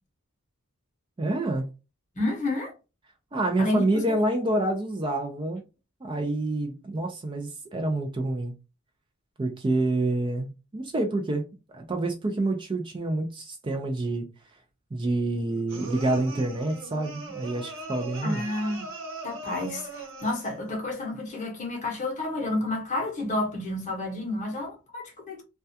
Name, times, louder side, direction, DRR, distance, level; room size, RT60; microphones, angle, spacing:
voice 1, 1.2-1.7 3.3-5.6 6.0-8.5 9.4-11.5 11.7-14.2 14.9-18.5, right 2 dB, 25° right, 0.4 m, -27 dB
voice 2, 2.2-2.7 3.6-4.2 18.2-18.9 19.2-25.4, left 2 dB, 35° left, 0.8 m, -30 dB
sound 1, 15.7-20.6, right 3 dB, 60° right, 0.9 m, -40 dB
2.2 x 2.2 x 2.6 m
head